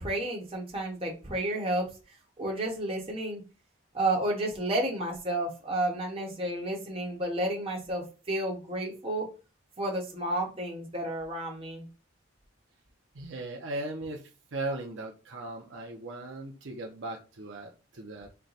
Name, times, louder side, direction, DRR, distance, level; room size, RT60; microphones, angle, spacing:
voice 1, 0.0-1.9 2.4-3.4 3.9-9.3 9.8-11.9, right 1 dB, 25° right, -1 dB, 1.1 m, -31 dB
voice 2, 13.1-18.3, right 2 dB, 65° right, 1 dB, 0.7 m, -38 dB
4.5 x 2.2 x 4.0 m, 0.32 s
head